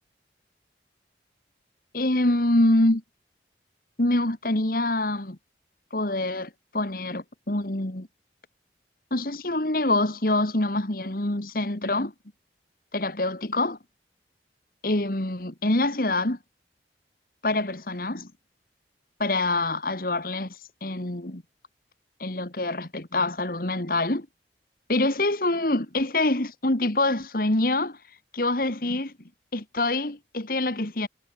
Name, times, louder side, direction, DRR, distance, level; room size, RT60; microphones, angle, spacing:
voice 1, 1.9-3.0 4.0-5.4 5.9-8.1 9.1-12.1 12.9-13.8 14.8-16.4 17.4-18.3 19.2-21.4 22.2-24.3 24.9-28.0 28.3-29.1 29.5-31.1, left 2 dB, 50° left, 2.0 m, -25 dB
head